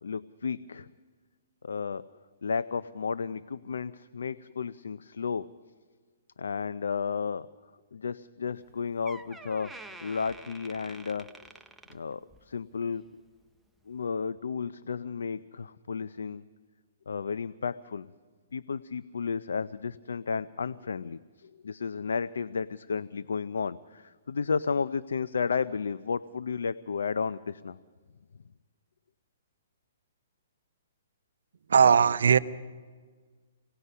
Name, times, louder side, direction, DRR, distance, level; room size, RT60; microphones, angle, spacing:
voice 1, 0.0-0.9 1.6-2.0 2.4-5.5 6.4-7.5 7.9-9.8 10.0-11.3 11.9-13.0 13.9-16.4 17.1-18.1 18.5-27.8, left 5 dB, 85° left, 14 dB, 0.5 m, -33 dB
Door, 8.6-8.7 9.0-12.5 12.9-13.2 13.9-14.0, right 2 dB, 5° right, 0.7 m, -48 dB
voice 2, 31.7-32.4, right 6 dB, 80° right, 14 dB, 0.7 m, -19 dB
26.5 x 18.5 x 5.5 m, 1.5 s
hypercardioid pair, 150°, 0 cm